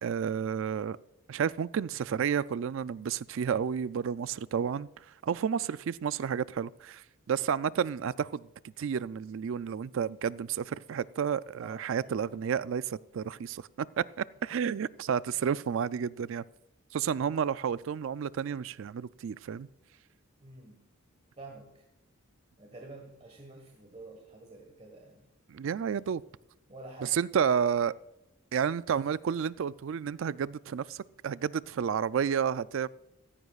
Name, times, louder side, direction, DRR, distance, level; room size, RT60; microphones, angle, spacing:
voice 1, 0.0-1.0 1.3-4.9 5.2-8.5 8.8-16.4 16.9-19.7 25.5-26.2 27.0-27.9 28.5-32.9, right 7 dB, 60° right, 18 dB, 0.3 m, -31 dB
voice 2, 11.6-12.1 14.5-14.6 20.4-20.8 21.4-21.8 22.6-25.2 26.7-27.2, right 2 dB, 30° right, 1 dB, 1.4 m, -48 dB
16.0 x 14.0 x 2.4 m, 0.85 s
head